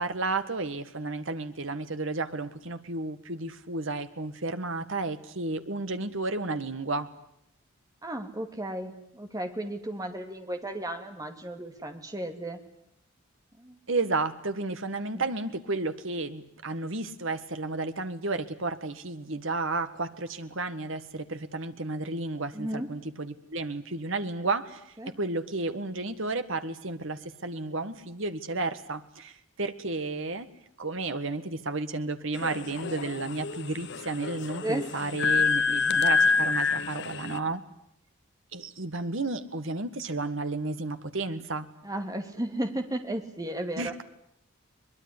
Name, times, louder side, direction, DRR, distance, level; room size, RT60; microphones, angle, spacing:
voice 1, 0.0-7.1 13.9-30.5 30.8-37.6 38.5-41.7 43.8-44.0, right 3 dB, 60° right, 10 dB, 1.7 m, -32 dB
voice 2, 8.0-12.6 13.6-13.8 15.1-15.2 22.5-22.9 25.0-25.2 34.6-34.9 41.8-43.9, right 1 dB, 15° right, 6 dB, 2.4 m, -34 dB
sound 1, 32.3-37.4, left 5 dB, 55° left, 1.0 m, -27 dB
23.0 x 21.5 x 9.8 m, 0.74 s
head